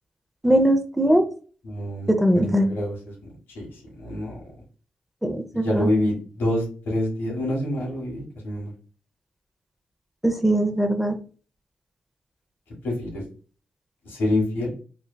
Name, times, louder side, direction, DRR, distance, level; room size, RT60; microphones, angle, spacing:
voice 1, 0.4-1.3 2.1-2.7 5.2-5.9 10.2-11.2, right 1 dB, 5° right, 7 dB, 0.7 m, -20 dB
voice 2, 1.6-3.2 3.5-4.4 5.5-8.7 12.8-13.2 14.0-14.7, left 1 dB, 85° left, -3 dB, 1.4 m, -27 dB
3.2 x 2.2 x 2.2 m, 0.39 s
supercardioid pair, 40°, 4 cm